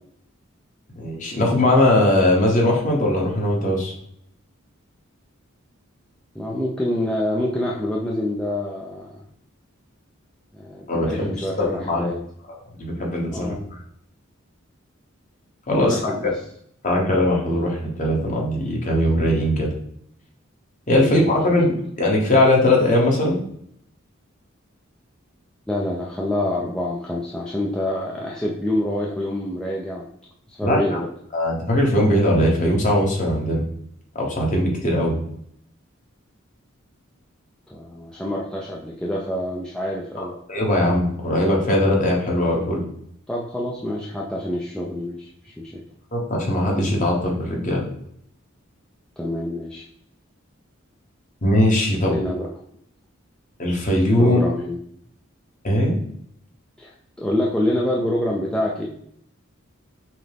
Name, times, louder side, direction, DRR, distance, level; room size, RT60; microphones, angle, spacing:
voice 1, 1.0-3.9 10.9-12.0 12.8-13.5 15.7-16.1 16.8-19.7 20.9-23.4 30.6-31.0 31.3-33.6 34.1-35.1 40.5-42.8 46.1-47.8 51.4-52.2 53.6-54.4 55.6-55.9, left 1 dB, 35° left, -2 dB, 1.1 m, -20 dB
voice 2, 6.3-9.2 10.5-12.2 13.3-13.6 15.7-16.4 20.9-21.1 25.7-30.1 30.5-31.1 37.7-40.3 43.3-45.8 49.2-49.9 52.0-52.5 54.1-54.8 56.8-58.9, left 1 dB, 5° left, -4 dB, 0.4 m, -26 dB
5.8 x 2.1 x 3.4 m, 0.69 s
head